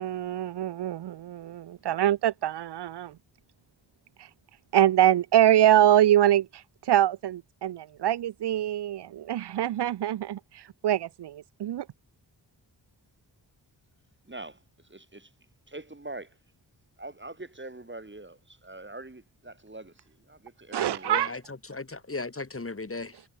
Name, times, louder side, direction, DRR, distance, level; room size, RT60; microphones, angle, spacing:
voice 1, 0.0-3.2 4.2-4.3 4.7-11.9 20.7-21.3, right 12 dB, 65° right, 0.7 m, -24 dB
voice 2, 14.3-15.3 15.7-16.4 17.0-21.3, right 2 dB, 25° right, 7.1 m, -43 dB
voice 3, 21.0-23.2, left 3 dB, 30° left, 3.6 m, -36 dB
cardioid pair, 45°, 43 cm